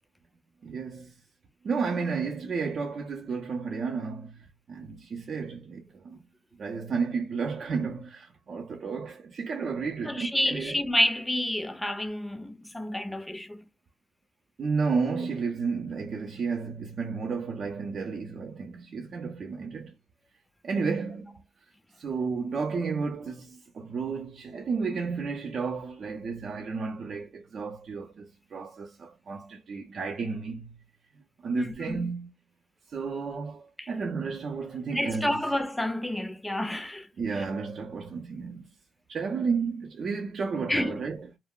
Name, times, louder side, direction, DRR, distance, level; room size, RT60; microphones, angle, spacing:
voice 1, 0.6-1.1 1.6-6.2 6.6-10.8 14.6-19.9 20.6-21.4 22.0-30.8 31.4-32.3 32.9-35.4 37.2-38.7 39.1-41.3, right 5 dB, 50° right, 0.5 m, -32 dB
voice 2, 10.0-13.7 31.5-32.1 33.8-33.9 34.9-37.1 40.7-41.0, left 1 dB, 10° left, 0.5 m, -29 dB
2.3 x 2.0 x 3.6 m
cardioid pair, 80°, 0 cm